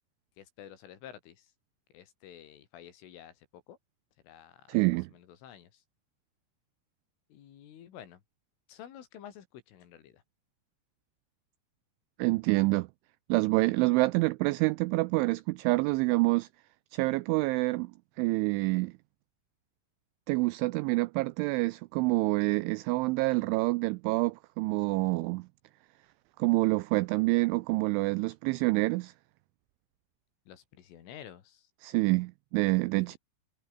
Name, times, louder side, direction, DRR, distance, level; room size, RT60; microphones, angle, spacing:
voice 1, 0.4-1.5 1.9-3.8 4.2-4.6 5.1-5.8 7.3-8.2 8.7-10.2 30.5-31.7, left 10 dB, 70° left, 5.2 m, -50 dB
voice 2, 4.7-5.1 12.2-12.9 13.3-16.5 16.9-17.9 18.2-18.9 20.3-25.5 26.4-29.1 31.8-33.2, right 23 dB, 90° right, 2.7 m, -27 dB
omnidirectional pair, 6.0 m